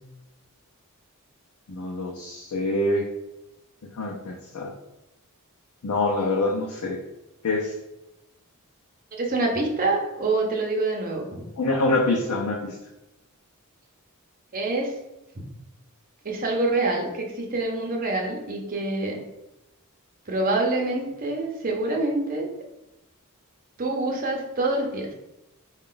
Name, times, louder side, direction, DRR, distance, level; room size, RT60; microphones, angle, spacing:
voice 1, 1.7-3.0 4.0-4.7 5.8-7.0 7.4-7.7 11.6-12.8, left 2 dB, 75° left, -2 dB, 0.6 m, -25 dB
voice 2, 9.1-11.5 14.5-14.9 15.3-15.5 16.2-19.2 20.3-22.5 23.8-25.1, right 2 dB, 40° right, 0 dB, 0.8 m, -26 dB
4.2 x 2.4 x 3.8 m, 0.94 s
head